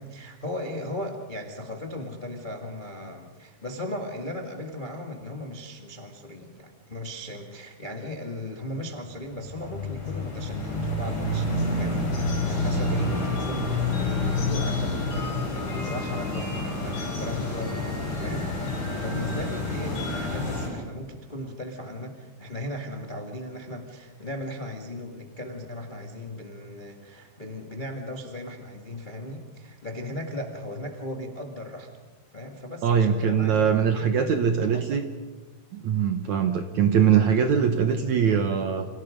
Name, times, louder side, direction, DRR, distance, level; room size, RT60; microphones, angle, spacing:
voice 1, 0.0-31.9 32.3-35.0, left 1 dB, 85° left, 3 dB, 0.4 m, -37 dB
sound 1, 9.0-20.7, left 2 dB, 50° left, 9.7 m, -28 dB
voice 2, 32.8-35.0 35.7-38.9, right 7 dB, 70° right, 7 dB, 1.8 m, -22 dB
29.5 x 27.0 x 5.2 m, 1.3 s
omnidirectional pair, 4.8 m